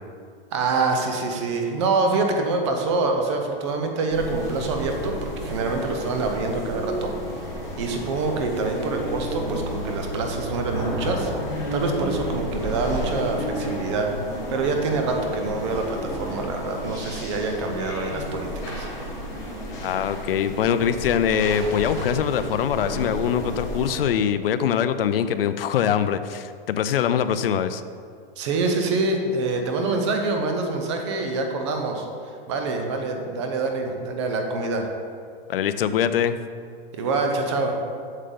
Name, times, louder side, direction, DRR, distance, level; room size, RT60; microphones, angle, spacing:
voice 1, 0.5-7.1 7.8-11.3 11.7-14.1 14.5-18.9 28.4-32.1 32.5-34.9 36.9-37.8, right 3 dB, 30° right, 4 dB, 0.7 m, -26 dB
sound 1, 4.1-24.0, equal, 10° left, 1.1 m, -31 dB
voice 2, 19.7-27.8 35.5-36.4, left 9 dB, 70° left, 12 dB, 0.5 m, -23 dB
8.1 x 6.6 x 3.9 m, 2.2 s
hypercardioid pair, 170°, 30 cm